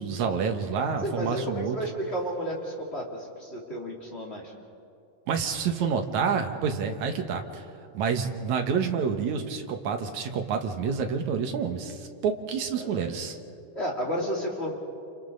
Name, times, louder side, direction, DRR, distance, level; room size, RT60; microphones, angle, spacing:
voice 1, 0.0-1.8 5.3-7.6 7.9-13.4, right 6 dB, 65° right, 5 dB, 2.4 m, -28 dB
voice 2, 1.0-4.5 12.7-13.1 13.7-14.7, equal, 20° left, -2 dB, 2.6 m, -32 dB
29.5 x 28.5 x 4.0 m, 2.5 s
omnidirectional pair, 4.0 m